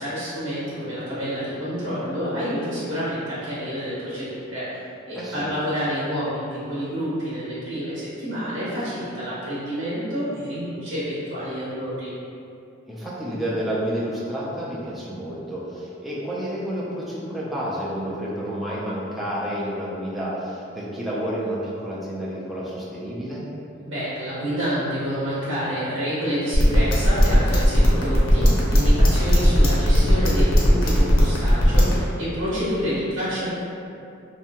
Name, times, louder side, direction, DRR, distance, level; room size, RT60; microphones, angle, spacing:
voice 1, 0.0-4.6 5.1-12.1 23.8-33.5, equal, 70° right, -11 dB, 0.8 m, -28 dB
voice 2, 5.1-5.5 12.9-23.4, equal, ahead, -8 dB, 0.4 m, -30 dB
sound 1, 26.5-31.9, equal, 75° left, 0.6 m, -17 dB
2.6 x 2.2 x 2.8 m, 2.6 s
head